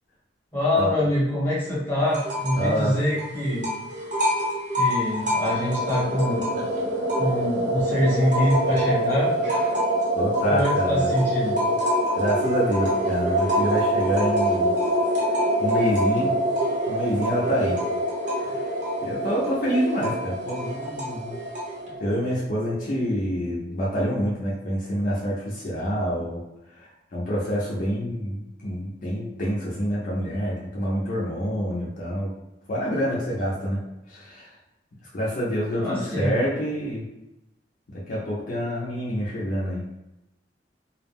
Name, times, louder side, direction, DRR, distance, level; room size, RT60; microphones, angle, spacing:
voice 1, 0.5-3.7 4.8-6.4 7.2-9.3 10.5-11.6 35.8-36.4, left 1 dB, 10° left, -7 dB, 0.9 m, -24 dB
sound 1, 2.1-2.7 3.0-7.6 8.0-21.9, left 1 dB, 45° right, 0.7 m, -30 dB
voice 2, 2.6-2.9 10.1-11.1 12.2-14.7 15.6-16.3 16.9-17.7 19.0-21.4 22.0-26.4 27.1-32.3 32.7-33.8 34.1-34.5 35.1-37.0 38.1-39.8, equal, 50° left, -6 dB, 0.5 m, -27 dB
sound 2, 5.2-22.1, right 1 dB, 80° right, 0.5 m, -26 dB
2.3 x 2.0 x 3.4 m, 0.92 s
head